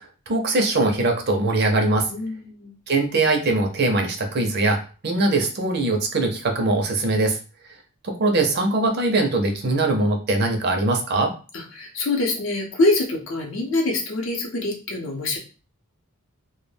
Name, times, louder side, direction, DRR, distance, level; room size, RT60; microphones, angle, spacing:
voice 1, 0.0-2.1 2.9-7.4 8.0-11.3, right 2 dB, 45° right, 3 dB, 0.5 m, -22 dB
voice 2, 2.1-2.7 11.5-15.4, left 2 dB, 65° left, 1 dB, 0.6 m, -24 dB
2.2 x 2.1 x 3.2 m, 0.36 s
head